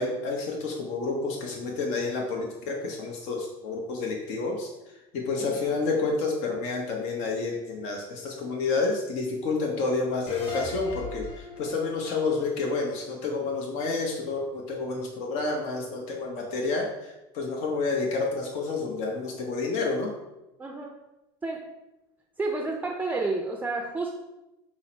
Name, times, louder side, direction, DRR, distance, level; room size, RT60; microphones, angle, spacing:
voice 1, 0.0-20.1, left 3 dB, 60° left, 0 dB, 0.8 m, -29 dB
voice 2, 5.4-5.7 20.6-20.9 21.4-21.6 22.4-24.2, right 3 dB, 10° right, 1 dB, 0.4 m, -30 dB
sound 1, 10.3-13.6, left 3 dB, 40° left, 1.3 m, -40 dB
5.5 x 2.0 x 4.2 m, 0.97 s
supercardioid pair, 100°, 14 cm